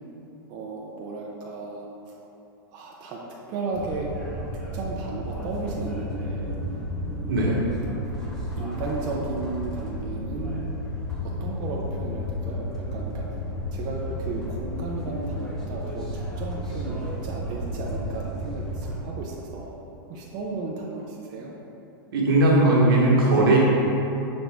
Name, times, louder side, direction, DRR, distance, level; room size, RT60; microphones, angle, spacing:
voice 1, 0.5-2.1 2.7-3.2 3.5-4.1 4.7-6.5 7.1-7.7 8.5-13.3 13.7-19.8 20.1-21.5, right 3 dB, 35° right, -2 dB, 0.5 m, -34 dB
sound 1, 3.7-19.0, equal, 5° left, 0.8 m, -32 dB
voice 2, 7.3-7.6 22.1-23.6, right 2 dB, 75° right, -4 dB, 1.1 m, -18 dB
5.9 x 2.6 x 3.3 m, 3.0 s
hypercardioid pair, 135°, 12 cm